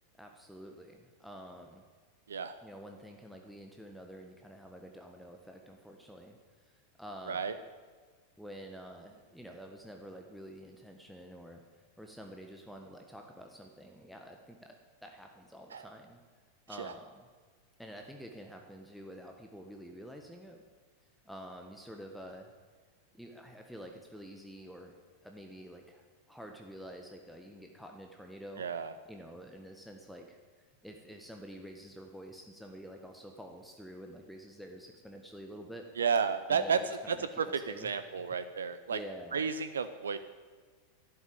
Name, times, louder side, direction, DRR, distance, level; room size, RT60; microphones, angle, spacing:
voice 1, 0.2-1.8 2.6-6.4 6.6-7.6 8.4-11.6 12.0-14.7 15.0-16.2 16.7-17.3 17.8-20.6 21.2-22.5 23.1-24.9 25.2-28.6 29.1-30.4 30.8-35.8 36.5-37.9 38.2-38.3 38.9-39.5, equal, ahead, 2 dB, 1.4 m, -48 dB
voice 2, 28.6-28.9 36.0-36.8 37.1-39.0 39.3-40.2, right 6 dB, 70° right, 12 dB, 0.6 m, -32 dB
12.0 x 11.5 x 8.7 m, 1.5 s
figure-of-eight pair, 90°, 0 cm